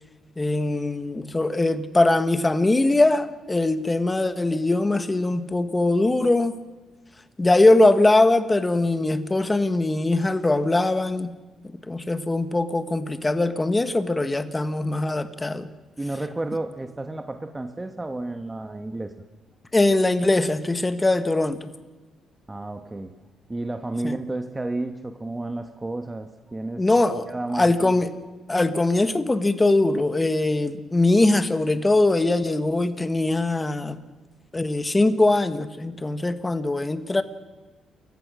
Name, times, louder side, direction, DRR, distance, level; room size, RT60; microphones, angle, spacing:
voice 1, 0.4-6.6 7.4-11.3 11.6-15.7 19.7-21.7 24.0-24.2 26.8-28.1 28.5-34.0 34.5-37.2, left 2 dB, 20° left, 10 dB, 1.5 m, -21 dB
voice 2, 16.0-19.1 22.5-23.1 23.5-26.8 27.3-27.9, right 2 dB, 15° right, 7 dB, 1.2 m, -31 dB
28.5 x 15.0 x 6.4 m, 1.2 s
cardioid pair, 90°, 0 cm